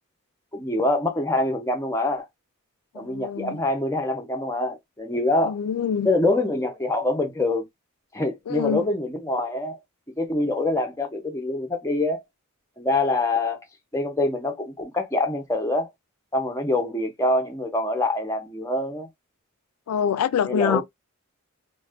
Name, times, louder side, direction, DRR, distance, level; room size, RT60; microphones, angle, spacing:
voice 1, 0.5-2.3 2.9-5.6 6.0-7.7 8.1-9.8 10.2-12.2 12.8-13.6 13.9-15.9 16.3-19.1 20.5-20.8, left 2 dB, 15° left, 0.7 m, -25 dB
voice 2, 2.9-3.6 5.4-6.1 8.5-8.9 19.9-20.8, left 7 dB, 85° left, 0.4 m, -25 dB
2.4 x 2.2 x 3.4 m
head